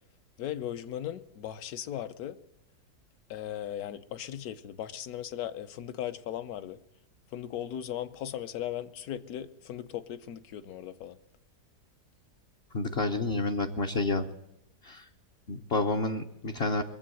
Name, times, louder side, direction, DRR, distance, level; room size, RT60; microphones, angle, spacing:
voice 1, 0.4-2.4 3.3-6.8 7.3-11.2, left 11 dB, 65° left, 13 dB, 1.2 m, -37 dB
voice 2, 12.7-14.3 14.8-15.1 15.5-16.8, left 3 dB, 50° left, 3 dB, 0.8 m, -29 dB
21.5 x 7.6 x 7.7 m, 0.87 s
omnidirectional pair, 1.8 m